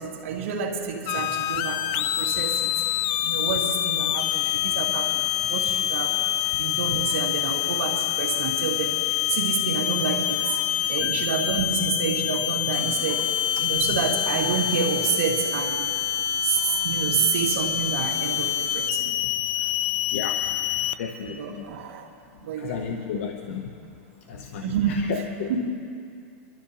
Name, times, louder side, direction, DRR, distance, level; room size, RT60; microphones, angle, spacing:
voice 1, 0.0-2.7 3.2-5.2 5.5-6.2 6.6-13.3 13.6-15.9 16.4-19.2 21.3-22.1 22.4-23.0 23.5-23.6 24.6-25.1 25.4-25.7, right 6 dB, 80° right, 0 dB, 1.8 m, -29 dB
sound 1, 1.1-21.0, left 12 dB, 45° left, 0.3 m, -26 dB
voice 2, 20.1-20.4 21.0-21.6 22.6-23.7 24.3-25.5, left 7 dB, 75° left, 3 dB, 0.9 m, -33 dB
25.5 x 12.5 x 2.8 m, 2.4 s
supercardioid pair, 150°, 7 cm